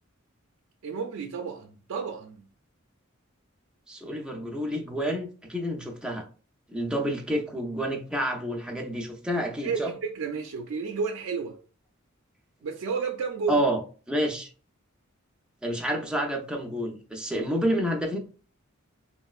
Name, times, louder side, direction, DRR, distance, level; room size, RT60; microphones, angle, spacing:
voice 1, 0.8-2.4 9.6-11.6 12.6-13.6, right 5 dB, 85° right, 0.4 m, -31 dB
voice 2, 3.9-6.2 6.7-9.9 13.5-13.8 14.1-14.5 15.6-18.2, equal, 5° right, 0.5 m, -29 dB
3.8 x 2.0 x 2.3 m
head